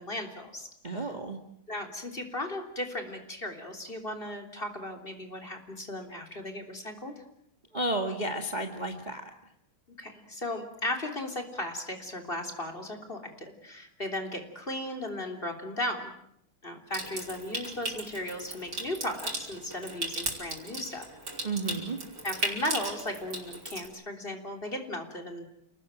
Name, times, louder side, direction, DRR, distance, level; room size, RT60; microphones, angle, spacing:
voice 1, 0.0-1.0 1.7-7.2 10.0-16.1 16.6-21.1 22.2-25.4, left 1 dB, 25° left, 4 dB, 3.6 m, -36 dB
voice 2, 0.8-1.4 7.7-9.3 21.4-22.0, right 2 dB, 20° right, 5 dB, 1.7 m, -32 dB
Water tap faucet / Sink (filling or washing) / Trickle dribble, 16.9-23.9, right 1 dB, 50° right, 5.8 m, -37 dB
29.5 x 19.0 x 9.0 m, 0.74 s
omnidirectional pair, 2.4 m